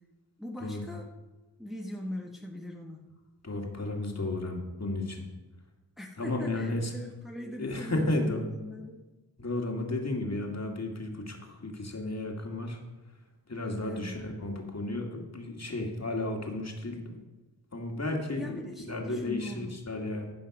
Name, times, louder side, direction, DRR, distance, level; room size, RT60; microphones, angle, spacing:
voice 1, 0.4-1.1 1.6-3.0 6.0-9.0 13.8-14.1 18.4-19.7, left 1 dB, ahead, 1 dB, 1.2 m, -40 dB
voice 2, 3.4-5.3 6.2-6.9 7.6-8.5 9.4-12.8 13.5-17.2 17.7-18.6 18.9-20.3, left 2 dB, 40° left, 2 dB, 2.2 m, -33 dB
14.5 x 5.6 x 6.0 m, 1.2 s
cardioid pair, 50°, 42 cm